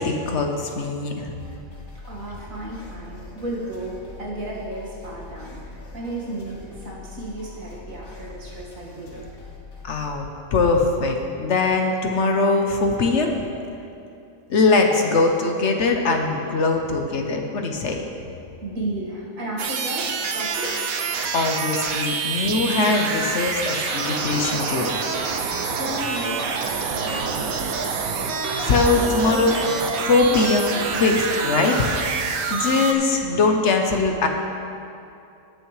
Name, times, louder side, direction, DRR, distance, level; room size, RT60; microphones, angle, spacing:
voice 1, 0.0-1.3 9.8-10.3 10.5-13.4 14.5-18.0 21.3-24.9 28.6-29.6 30.0-31.9 32.3-34.3, left 3 dB, 60° left, 3 dB, 1.1 m, -21 dB
sound 1, 1.4-10.0, left 2 dB, 85° left, 1.9 m, -42 dB
voice 2, 2.0-9.2 18.6-20.8 22.2-22.4 25.8-26.4 26.9-27.6, right 1 dB, 75° right, -5 dB, 2.3 m, -33 dB
sound 2, 19.6-32.9, right 5 dB, 90° right, 1.2 m, -26 dB
19.0 x 6.6 x 3.2 m, 2.6 s
omnidirectional pair, 1.4 m